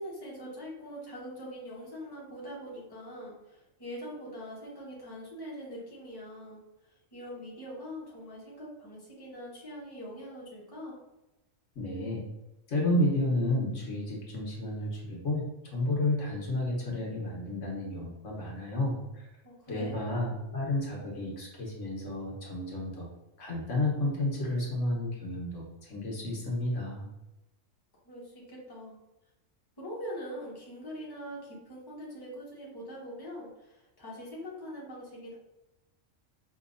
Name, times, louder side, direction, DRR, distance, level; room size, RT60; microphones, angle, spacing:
voice 1, 0.0-6.6 7.1-11.0 19.4-20.0 28.1-29.0 29.8-35.4, equal, 20° left, -5 dB, 1.0 m, -43 dB
voice 2, 11.8-12.2 12.7-15.4 15.7-19.3 19.7-23.1 23.4-27.1, left 1 dB, 70° left, -3 dB, 1.4 m, -31 dB
4.9 x 2.8 x 2.5 m, 0.97 s
omnidirectional pair, 1.3 m